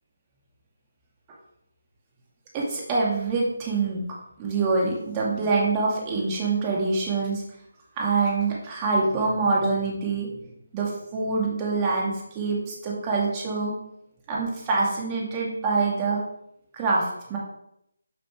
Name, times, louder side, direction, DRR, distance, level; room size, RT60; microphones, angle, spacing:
voice 1, 2.5-4.0 4.4-7.4 8.0-10.5 10.7-13.7 14.3-16.2 16.7-17.4, right 3 dB, 20° right, -3 dB, 2.5 m, -25 dB
5.9 x 5.6 x 6.1 m, 0.78 s
figure-of-eight pair, 160°, 0 cm